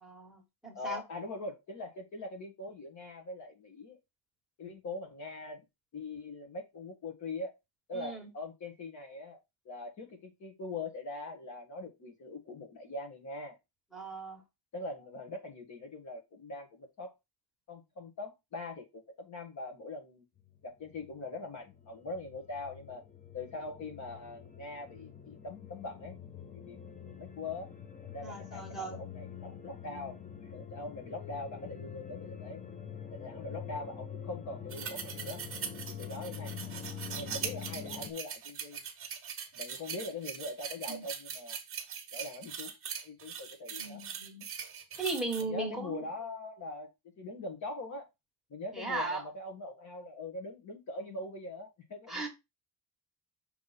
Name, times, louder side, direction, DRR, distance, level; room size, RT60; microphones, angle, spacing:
voice 1, 0.0-1.0 7.9-8.3 13.9-14.4 28.2-29.0 40.9-41.0 43.8-44.4 45.0-46.0 48.7-49.2 52.1-52.3, right 3 dB, ahead, 1.6 m, -37 dB
voice 2, 0.7-4.0 4.6-5.6 5.9-7.5 7.9-9.4 9.6-13.6 14.7-17.1 17.7-20.2 20.6-23.0 23.3-26.2 26.5-27.7 28.0-32.6 33.1-35.4 35.9-36.8 37.2-38.8 39.5-41.6 42.1-42.7 43.0-44.0 45.5-46.9 47.2-48.1 48.5-52.3, left 2 dB, 50° left, 1.6 m, -42 dB
sound 1, 20.4-38.1, left 8 dB, 20° left, 0.7 m, -45 dB
sound 2, 34.7-45.4, right 7 dB, 35° right, 1.3 m, -41 dB
6.6 x 3.5 x 4.1 m
cardioid pair, 175°, 38 cm